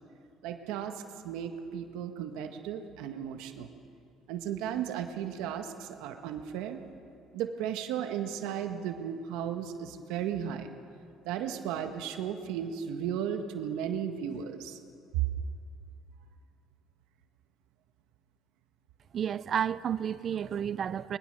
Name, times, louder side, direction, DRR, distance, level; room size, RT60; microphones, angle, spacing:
voice 1, 0.4-3.7 4.3-6.8 7.3-10.7 11.2-14.8 15.1-15.2, right 9 dB, 85° right, 1.6 m, -35 dB
voice 2, 19.1-21.2, right 8 dB, 35° right, 0.5 m, -31 dB
21.5 x 21.0 x 6.8 m
cardioid pair, 155°, 0 cm